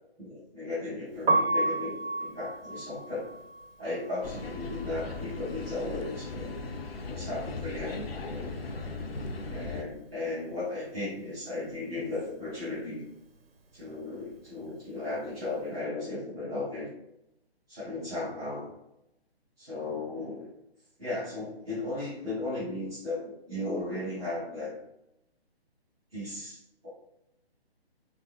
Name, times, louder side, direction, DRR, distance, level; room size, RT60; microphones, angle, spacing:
voice 1, 0.2-3.4 3.8-6.5 7.0-8.5 9.5-13.0 13.7-16.9 17.7-18.6 19.6-20.5 21.0-24.7 26.1-26.9, left 2 dB, 5° right, -17 dB, 0.4 m, -36 dB
Piano, 1.1-7.1 7.3-8.9 9.2-15.6, right 2 dB, 65° right, 0.5 m, -34 dB
sound 1, 4.2-9.8, left 3 dB, 65° left, 0.5 m, -37 dB
3.4 x 2.6 x 2.2 m, 0.84 s
figure-of-eight pair, 135°, 32 cm